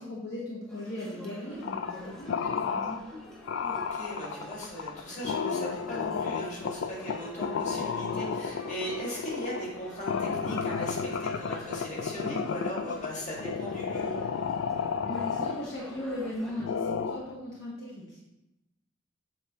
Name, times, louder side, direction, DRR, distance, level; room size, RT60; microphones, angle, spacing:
voice 1, 0.0-3.0 15.1-18.2, left 1 dB, 60° left, -4 dB, 1.1 m, -37 dB
sound 1, 0.7-16.6, equal, 5° left, 0.9 m, -47 dB
sound 2, 1.6-2.0 2.3-3.0 3.5-16.2 16.6-17.3, left 6 dB, 80° left, 0.4 m, -32 dB
voice 2, 3.6-14.1, equal, 40° left, -5 dB, 1.9 m, -38 dB
7.1 x 3.8 x 4.1 m, 0.94 s
head